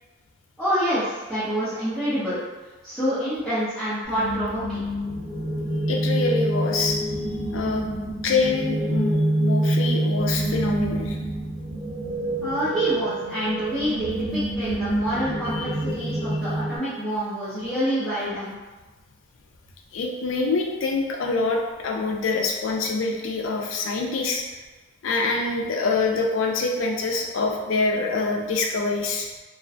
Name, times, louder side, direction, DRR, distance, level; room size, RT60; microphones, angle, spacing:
voice 1, 0.6-2.4 2.8-4.8 12.4-18.5, equal, ahead, -15 dB, 0.5 m, -27 dB
sound 1, 4.0-16.8, right 1 dB, 40° right, 1.0 m, -27 dB
voice 2, 5.9-7.0 7.5-7.8 8.2-11.2 15.6-15.8 19.9-24.4 25.0-29.3, left 3 dB, 80° left, 1 dB, 0.4 m, -25 dB
2.4 x 2.1 x 2.5 m, 1.3 s
head